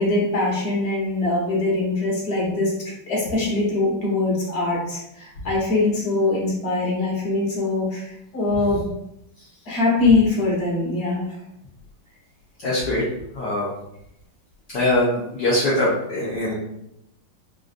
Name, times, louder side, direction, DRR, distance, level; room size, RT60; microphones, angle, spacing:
voice 1, 0.0-2.7 3.1-8.9 9.6-11.3, left 2 dB, 35° left, -5 dB, 1.3 m, -22 dB
voice 2, 12.6-13.0 13.3-13.7 14.7-16.5, left 1 dB, 65° left, -8 dB, 1.3 m, -22 dB
4.4 x 2.5 x 2.4 m, 0.80 s
omnidirectional pair, 2.3 m